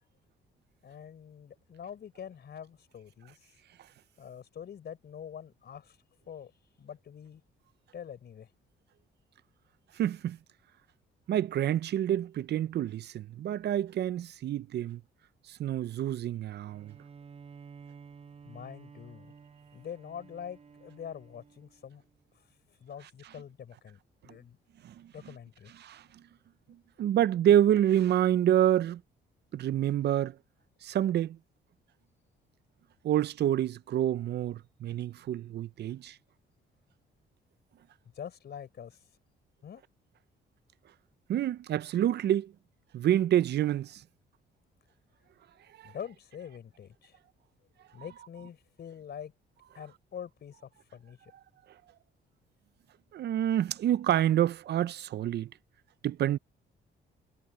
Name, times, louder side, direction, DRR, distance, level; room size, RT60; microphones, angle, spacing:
voice 1, 0.8-3.5 4.2-6.0 6.3-6.5 6.8-7.4 7.9-8.5 18.5-19.3 19.7-22.0 22.3-22.5 22.8-24.6 25.1-25.7 38.1-39.0 39.6-39.8 45.8-47.2 47.9-49.3 49.7-51.3, left 8 dB, 55° left, 4.1 m, -45 dB
voice 2, 10.0-10.4 11.3-15.0 15.5-16.9 24.8-25.1 25.8-26.0 27.0-29.0 29.5-30.4 30.8-31.4 33.0-36.2 41.3-42.5 42.9-44.0 45.8-45.9 53.1-55.5 56.0-56.4, right 11 dB, 55° right, 0.5 m, -27 dB
Bowed string instrument, 16.7-22.1, right 6 dB, 30° right, 0.9 m, -52 dB
cardioid pair, 90°, 20 cm